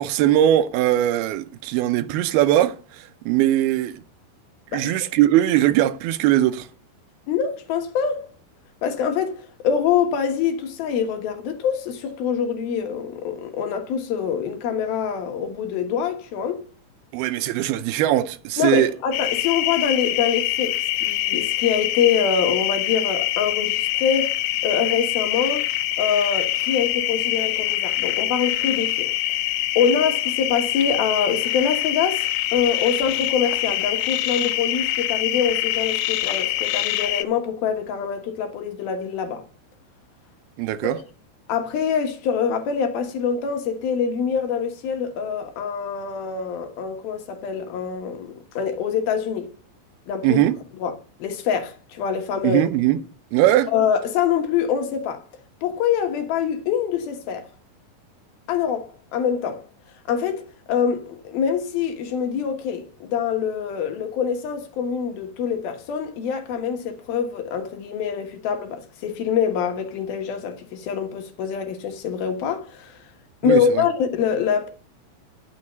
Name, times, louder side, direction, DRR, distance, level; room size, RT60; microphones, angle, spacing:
voice 1, 0.0-4.0 4.7-6.7 17.1-18.9 40.6-41.0 50.2-50.6 52.4-53.0 53.3-53.7 73.4-73.8, right 13 dB, 80° right, 2.3 m, -20 dB
voice 2, 4.7-5.1 7.3-8.3 8.8-9.4 9.6-16.6 18.6-24.3 24.6-25.7 26.0-29.1 29.8-39.4 40.8-40.9 41.5-49.5 50.1-50.4 50.8-50.9 51.2-52.6 53.7-55.2 55.6-57.5 58.5-59.6 60.1-60.4 60.7-73.0 73.4-74.7, left 7 dB, 65° left, 2.8 m, -25 dB
sound 1, 19.1-37.3, left 14 dB, 80° left, 3.0 m, -24 dB
11.0 x 6.4 x 7.9 m
omnidirectional pair, 5.2 m